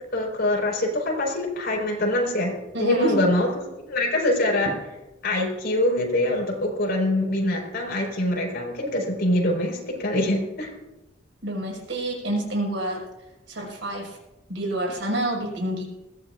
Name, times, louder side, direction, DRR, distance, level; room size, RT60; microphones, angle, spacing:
voice 1, 0.1-2.5 2.8-4.7 5.2-10.7, left 1 dB, 55° left, -1 dB, 4.7 m, -24 dB
voice 2, 2.7-3.2 11.4-13.0 13.5-14.1 14.5-15.8, right 1 dB, 70° right, -1 dB, 5.6 m, -27 dB
21.5 x 16.5 x 2.5 m, 1.0 s
head